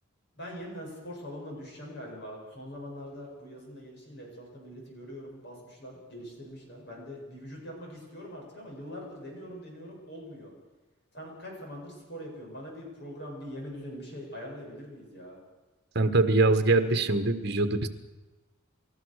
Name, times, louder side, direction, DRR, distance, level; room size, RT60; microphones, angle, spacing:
voice 1, 0.4-10.5 11.1-15.4, equal, 50° left, -1 dB, 8.0 m, -43 dB
voice 2, 15.9-17.9, right 3 dB, 50° right, 8 dB, 1.5 m, -23 dB
30.0 x 14.0 x 6.7 m, 1.2 s
head